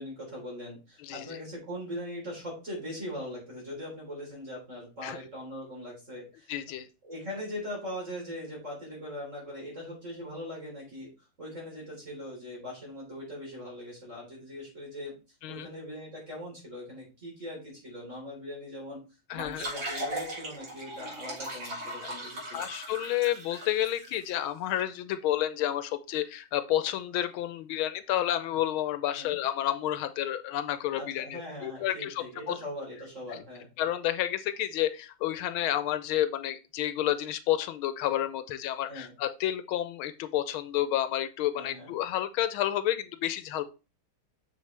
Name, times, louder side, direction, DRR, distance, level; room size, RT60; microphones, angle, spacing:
voice 1, 0.0-6.5 7.0-11.1 11.4-15.2 15.5-19.1 19.3-22.7 29.1-29.4 30.9-33.7 38.9-39.1 41.5-42.0, left 1 dB, 35° right, -3 dB, 4.0 m, -40 dB
voice 2, 6.5-6.9 15.4-15.7 19.3-19.6 22.0-22.1 22.5-32.5 33.3-33.4 33.8-43.6, left 12 dB, 85° left, 11 dB, 1.5 m, -30 dB
sound 1, 19.3-24.3, right 1 dB, 85° right, 4.3 m, -38 dB
6.7 x 6.6 x 3.3 m, 0.30 s
omnidirectional pair, 2.2 m